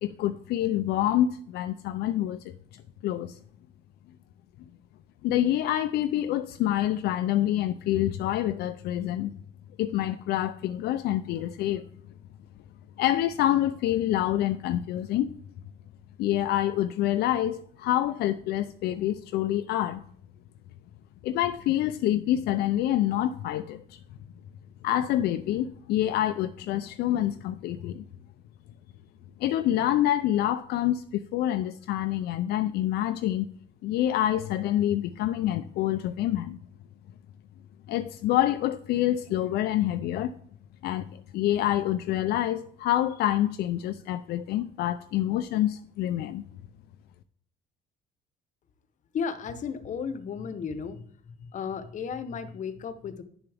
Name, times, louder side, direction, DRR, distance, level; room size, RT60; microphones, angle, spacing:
voice 1, 0.0-2.5 3.0-3.3 5.2-9.3 9.8-11.8 13.0-15.3 16.2-20.0 21.2-24.0 24.8-28.0 29.4-33.5 33.8-36.6 37.9-40.3 40.8-41.1 41.3-46.4, left 12 dB, 75° left, 0.5 m, -27 dB
voice 2, 49.1-51.0 51.5-53.2, left 6 dB, 50° left, 0.9 m, -34 dB
11.0 x 7.0 x 3.4 m
cardioid pair, 110°, 17 cm